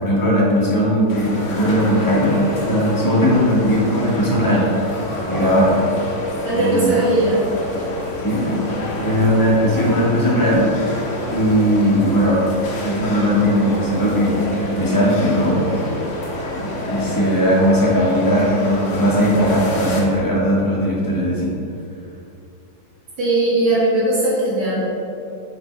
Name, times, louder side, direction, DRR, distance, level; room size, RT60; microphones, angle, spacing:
voice 1, 0.0-4.9 5.3-5.8 6.5-6.9 8.2-8.7 9.0-10.7 11.3-12.5 12.8-15.9 16.5-21.5, equal, 10° left, -6 dB, 1.2 m, -18 dB
sound 1, 1.1-20.0, left 1 dB, 50° left, 1.0 m, -28 dB
voice 2, 6.4-7.4 23.2-24.8, right 2 dB, 60° right, -9 dB, 2.3 m, -18 dB
6.8 x 4.5 x 4.5 m, 2.6 s
omnidirectional pair, 2.2 m